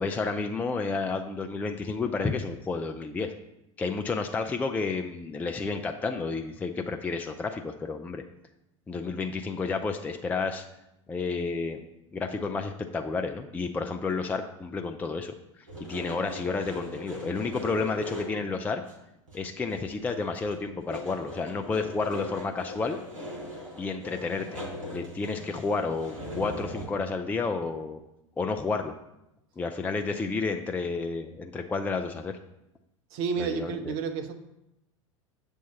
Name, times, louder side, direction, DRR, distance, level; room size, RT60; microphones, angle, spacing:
voice 1, 0.0-3.3 3.8-8.2 8.9-10.6 11.1-11.8 12.1-18.8 19.3-23.0 23.8-24.6 24.9-28.0 28.4-28.9 29.6-32.4 33.4-33.9, left 4 dB, 10° left, 5 dB, 0.4 m, -31 dB
sound 1, 15.7-18.5 18.8-18.9 19.3-20.1 20.4-26.9, left 1 dB, 75° right, 1.6 m, -40 dB
voice 2, 33.1-34.3, right 5 dB, 50° right, 7 dB, 0.8 m, -30 dB
7.3 x 3.6 x 5.7 m, 0.87 s
figure-of-eight pair, 80°, 17 cm